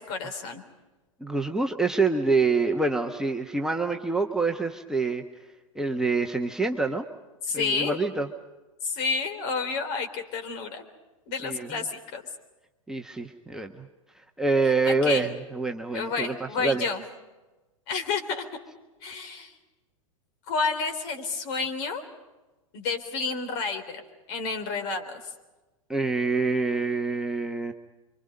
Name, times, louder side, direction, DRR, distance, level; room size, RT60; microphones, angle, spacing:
voice 1, 0.1-0.6 3.4-3.5 7.4-8.0 8.8-10.8 11.3-12.2 14.9-15.3 15.9-17.0 17.9-18.4 19.0-19.5 20.5-22.0 22.7-24.0 24.3-25.2, left 4 dB, 45° left, 7 dB, 3.8 m, -30 dB
voice 2, 1.2-5.2 5.7-7.1 7.5-8.3 11.4-11.8 12.9-13.9 14.4-16.8 25.9-27.7, right 3 dB, 5° right, 2 dB, 1.3 m, -26 dB
28.5 x 25.0 x 5.4 m, 1.1 s
figure-of-eight pair, 95°, 17 cm